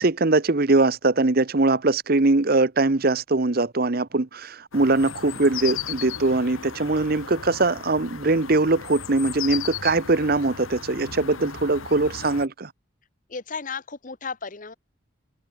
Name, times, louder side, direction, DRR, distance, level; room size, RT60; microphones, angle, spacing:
voice 1, 0.0-12.7, right 2 dB, 45° right, 0.9 m, -21 dB
sound 1, 4.7-12.5, left 8 dB, 90° left, 1.7 m, -36 dB
voice 2, 13.3-14.7, left 5 dB, 40° left, 1.0 m, -34 dB
open air
head